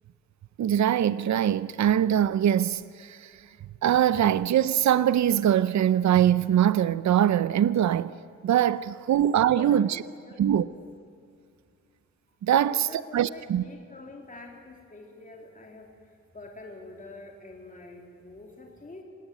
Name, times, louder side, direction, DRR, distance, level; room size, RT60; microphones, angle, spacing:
voice 1, 0.6-3.3 3.8-8.1 8.4-10.0 10.4-10.6 12.4-13.6, right 10 dB, 75° right, 0.6 m, -23 dB
voice 2, 9.1-10.9 12.6-19.0, left 2 dB, 30° left, 3.2 m, -46 dB
26.5 x 18.0 x 9.3 m
wide cardioid pair, 105°, 29 cm